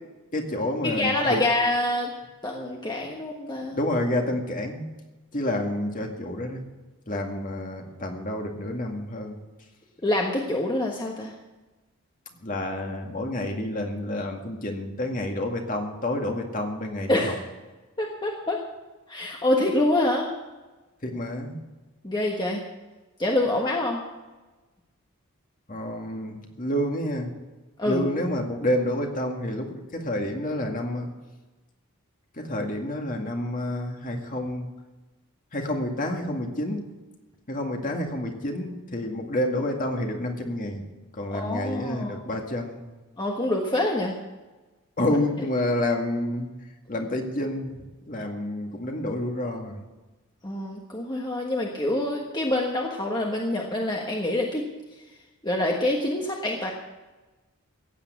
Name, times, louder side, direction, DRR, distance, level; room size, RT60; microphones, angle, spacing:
voice 1, 0.3-1.5 3.6-4.9 5.3-6.6 7.1-9.4 12.4-17.4 21.0-21.6 25.7-27.3 27.8-31.1 32.3-34.7 35.5-36.8 37.5-40.8 41.1-42.8 45.0-46.5 46.9-49.8, left 1 dB, 35° left, 2 dB, 2.1 m, -29 dB
voice 2, 1.0-2.1 2.4-3.8 10.0-11.3 17.1-17.4 18.0-18.6 19.1-20.3 22.0-22.6 23.2-24.0 27.8-28.1 41.3-42.1 43.2-44.1 50.4-54.6 55.4-56.7, left 1 dB, 20° left, -1 dB, 1.4 m, -26 dB
15.5 x 8.8 x 8.3 m, 1.2 s
head